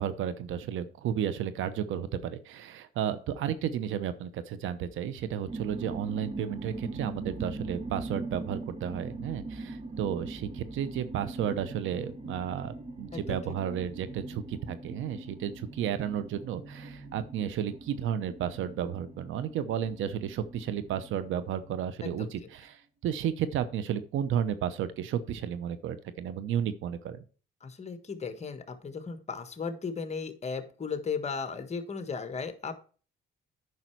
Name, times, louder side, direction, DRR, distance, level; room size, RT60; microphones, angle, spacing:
voice 1, 0.0-27.2, right 9 dB, 80° right, 13 dB, 0.9 m, -33 dB
sound 1, 5.5-22.0, right 3 dB, 30° right, 1.3 m, -42 dB
voice 2, 27.6-32.8, left 5 dB, 35° left, 9 dB, 1.4 m, -36 dB
9.4 x 5.6 x 4.6 m, 0.38 s
cardioid pair, 90°, 20 cm